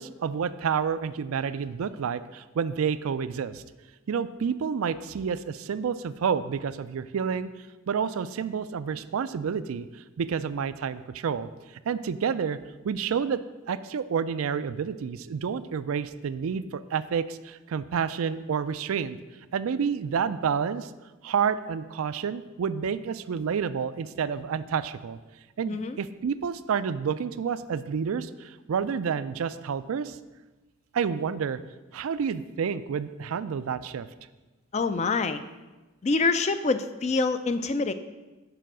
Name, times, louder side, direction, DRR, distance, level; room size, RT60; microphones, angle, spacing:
voice 1, 0.0-3.6 4.1-7.5 7.9-9.9 10.2-11.5 11.9-12.6 12.8-13.4 13.7-19.2 19.5-20.9 21.2-25.2 25.6-30.2 30.9-31.6 31.9-34.1, right 6 dB, 80° right, 13 dB, 0.4 m, -29 dB
voice 2, 25.7-26.0 34.7-35.4 36.0-37.9, left 3 dB, 30° left, 11 dB, 0.3 m, -26 dB
6.8 x 5.1 x 6.1 m, 1.2 s
head